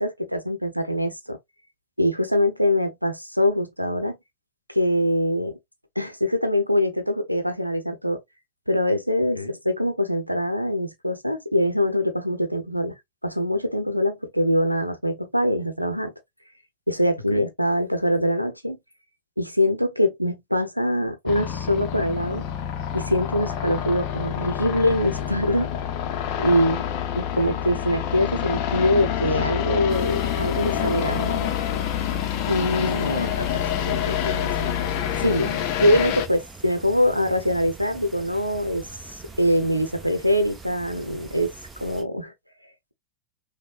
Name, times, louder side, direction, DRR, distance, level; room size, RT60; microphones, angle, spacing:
voice 1, 0.0-1.4 2.0-4.2 4.7-5.5 6.0-8.2 8.7-13.0 13.2-16.1 16.9-18.8 19.4-22.4 22.9-25.7 26.4-26.8 27.2-31.5 32.5-33.1 35.2-35.5 35.8-38.9 39.4-41.5 41.8-42.3, left 1 dB, 90° right, 0.6 m, -23 dB
sound 1, 21.3-36.3, left 10 dB, 45° left, 0.7 m, -27 dB
sound 2, 29.9-42.0, right 4 dB, 15° right, 0.9 m, -44 dB
voice 2, 32.8-34.8 35.3-35.6, left 2 dB, 85° left, 0.6 m, -32 dB
5.2 x 2.2 x 2.4 m
figure-of-eight pair, 90°, 0 cm